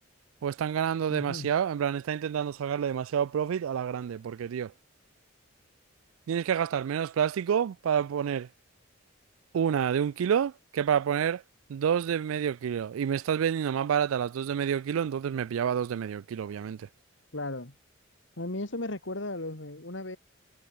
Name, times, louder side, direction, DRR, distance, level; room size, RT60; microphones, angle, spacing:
voice 1, 0.4-4.7 6.3-8.5 9.5-11.4 11.7-16.9, right 8 dB, 80° right, 0.3 m, -28 dB
voice 2, 1.1-1.5 17.3-17.7 18.4-20.2, left 2 dB, 65° left, 2.5 m, -35 dB
head